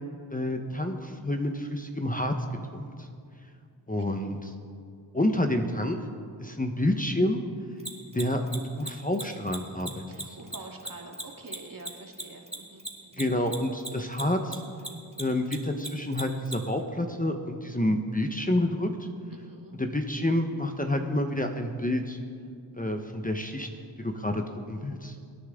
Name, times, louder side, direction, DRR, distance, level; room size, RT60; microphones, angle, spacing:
voice 1, 0.3-2.3 2.7-3.1 3.9-4.5 5.1-6.0 6.4-7.4 8.1-10.0 13.2-14.6 15.2-18.9 19.8-22.2 22.8-23.7 24.0-25.1, left 1 dB, 20° left, 4 dB, 1.1 m, -28 dB
Mechanisms, 7.8-14.5 14.8-16.5, right 2 dB, 15° right, 2.0 m, -36 dB
voice 2, 10.1-13.3 19.3-19.8, right 2 dB, 45° right, 1 dB, 2.2 m, -46 dB
25.0 x 9.7 x 3.8 m, 2.3 s
cardioid pair, 45°, 46 cm